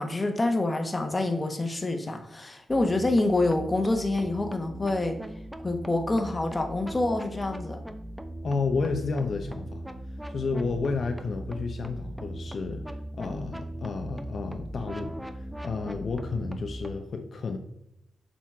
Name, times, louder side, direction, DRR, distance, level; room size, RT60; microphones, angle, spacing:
voice 1, 0.0-5.2 5.6-7.8, left 2 dB, 20° left, 5 dB, 1.2 m, -27 dB
sound 1, 2.7-16.9, right 1 dB, 5° right, 0.7 m, -39 dB
voice 2, 8.4-9.9 10.3-12.8 13.1-15.1 15.6-17.6, left 4 dB, 55° left, 5 dB, 0.8 m, -31 dB
7.4 x 4.3 x 6.0 m, 0.80 s
wide cardioid pair, 120°, 0 cm